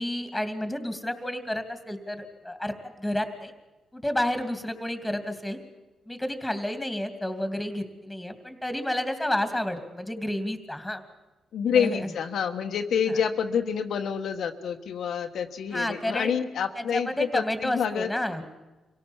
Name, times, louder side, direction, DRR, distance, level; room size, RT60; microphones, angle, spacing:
voice 1, 0.0-3.5 3.9-5.6 6.1-11.0 11.6-12.1 13.1-13.2 15.7-16.3 16.7-18.4, left 1 dB, 5° left, 9 dB, 2.6 m, -30 dB
voice 2, 11.5-18.1, left 7 dB, 75° left, 4 dB, 1.3 m, -27 dB
25.0 x 17.5 x 7.3 m, 1.1 s
cardioid pair, 90°, 0 cm